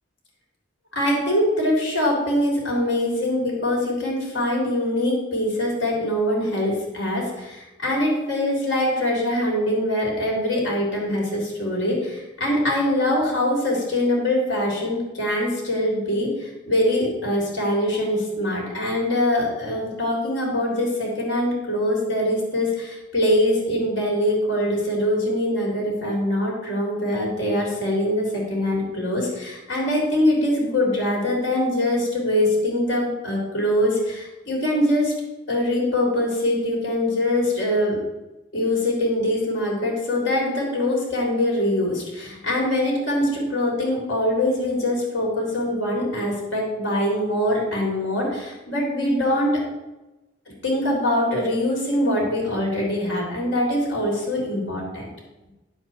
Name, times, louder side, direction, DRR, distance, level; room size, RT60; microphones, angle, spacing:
voice 1, 1.0-35.1 35.5-38.0 38.5-49.6 50.6-55.0, left 1 dB, 85° left, -2 dB, 3.7 m, -23 dB
9.5 x 7.6 x 4.5 m, 1.0 s
head